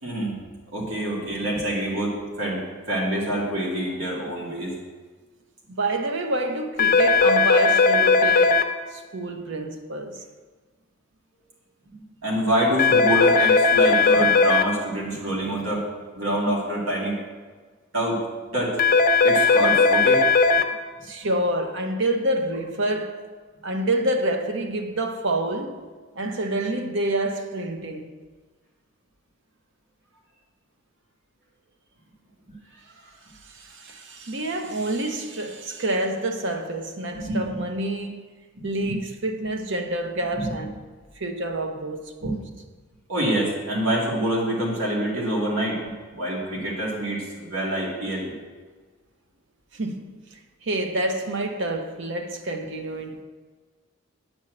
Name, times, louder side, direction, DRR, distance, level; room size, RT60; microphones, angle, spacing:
voice 1, 0.0-0.3 0.7-2.6 2.9-4.7 12.2-15.9 16.1-17.1 17.9-18.2 18.5-18.8 19.2-20.2 37.1-37.6 40.3-40.5 42.2-42.3 43.1-45.8 46.1-48.3, right 1 dB, 75° right, 2.4 m, -26 dB
voice 2, 5.7-10.2 21.0-23.3 23.6-25.9 26.2-28.1 33.4-38.2 38.6-40.7 41.2-42.4 49.7-50.1 50.6-53.2, right 1 dB, 55° right, 0.8 m, -28 dB
sound 1, 6.8-8.6 12.8-14.6 18.8-20.6, left 4 dB, 40° left, 0.5 m, -17 dB
9.5 x 4.6 x 7.7 m
head